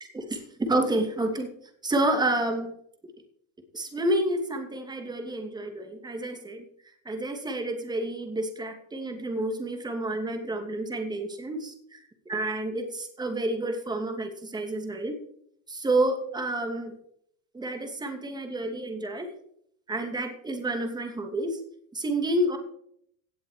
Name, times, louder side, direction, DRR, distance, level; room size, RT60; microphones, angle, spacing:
voice 1, 0.1-1.5 1.8-2.7 3.7-6.7 7.0-12.0 12.3-15.2 15.7-16.9 17.5-19.3 19.9-21.6 21.9-22.6, right 1 dB, 10° right, 5 dB, 2.5 m, -29 dB
17.0 x 7.5 x 4.9 m, 0.67 s
supercardioid pair, 130°, 38 cm